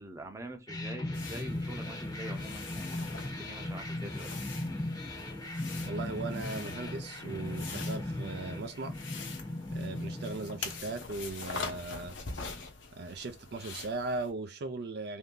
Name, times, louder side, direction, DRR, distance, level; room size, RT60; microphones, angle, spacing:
voice 1, 0.0-3.0 3.4-4.3 10.0-10.1, right 1 dB, 15° right, 0.7 m, -45 dB
sound 1, 0.7-11.2, left 1 dB, 20° left, 0.7 m, -38 dB
sound 2, 1.1-14.3, left 4 dB, 85° left, 1.0 m, -44 dB
voice 2, 5.8-9.0 9.7-12.1 12.9-15.2, right 3 dB, 60° right, 0.4 m, -38 dB
3.3 x 2.7 x 3.7 m
head